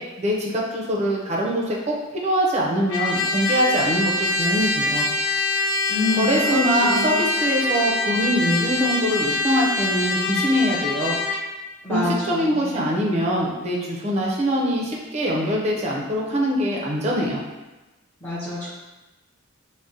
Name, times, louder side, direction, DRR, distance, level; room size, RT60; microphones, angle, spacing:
voice 1, 0.0-2.0 2.2-5.1 6.2-11.2 11.9-17.4, equal, 30° right, -3 dB, 0.5 m, -23 dB
Trumpet, 2.9-11.4, left 2 dB, 85° left, 0.4 m, -24 dB
voice 2, 5.9-7.2 11.8-12.8 18.2-18.7, left 2 dB, 10° left, -12 dB, 0.6 m, -27 dB
2.7 x 2.1 x 3.7 m, 1.1 s
head